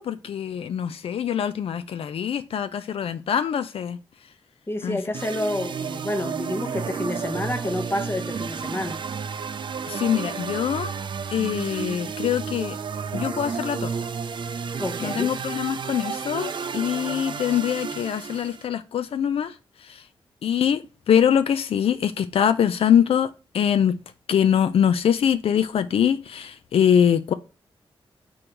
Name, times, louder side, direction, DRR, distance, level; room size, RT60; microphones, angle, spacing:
voice 1, 0.0-4.0 4.8-5.0 9.9-10.9 11.3-12.8 13.1-13.9 15.0-19.5 19.8-20.0 20.4-20.8 21.1-24.0 24.3-27.3, left 8 dB, 80° left, 0.4 m, -23 dB
voice 2, 4.7-9.0 14.8-15.4, left 1 dB, 25° left, 0.9 m, -29 dB
sound 1, 5.1-18.6, right 6 dB, 55° right, 0.4 m, -32 dB
6.1 x 3.9 x 4.4 m
wide cardioid pair, 120°, 10 cm